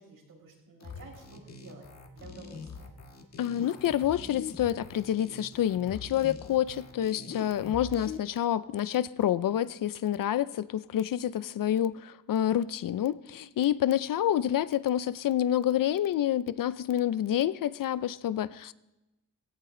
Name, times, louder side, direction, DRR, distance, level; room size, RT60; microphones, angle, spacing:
voice 1, 0.0-1.9 2.1-2.9, right 3 dB, 75° right, -2 dB, 6.1 m, -51 dB
sound 1, 0.8-8.2, left 5 dB, 50° left, 1.6 m, -43 dB
voice 2, 3.4-18.7, left 11 dB, 75° left, 16 dB, 0.6 m, -28 dB
17.5 x 16.5 x 3.8 m, 0.99 s
wide cardioid pair, 175°, 33 cm